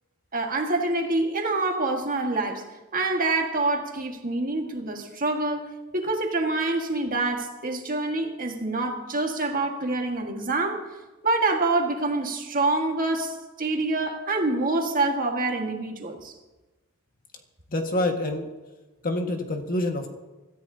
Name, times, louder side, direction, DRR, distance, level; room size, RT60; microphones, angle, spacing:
voice 1, 0.3-2.7 2.9-10.9 11.2-16.3, right 2 dB, 40° right, 1.8 m, -26 dB
voice 2, 17.7-18.5 19.0-20.1, left 1 dB, 45° left, 1.7 m, -26 dB
25.5 x 14.0 x 2.8 m
head